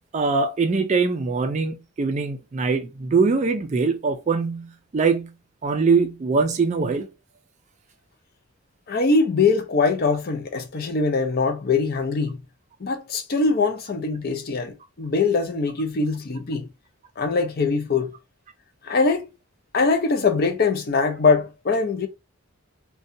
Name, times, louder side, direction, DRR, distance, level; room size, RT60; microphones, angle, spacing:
voice 1, 0.0-5.3 5.6-7.1, right 4 dB, 35° right, 0.3 m, -22 dB
voice 2, 8.9-12.4 12.8-16.7 17.2-18.1 18.8-19.3 19.7-22.1, left 4 dB, 45° left, 0.5 m, -22 dB
2.7 x 2.2 x 2.6 m
head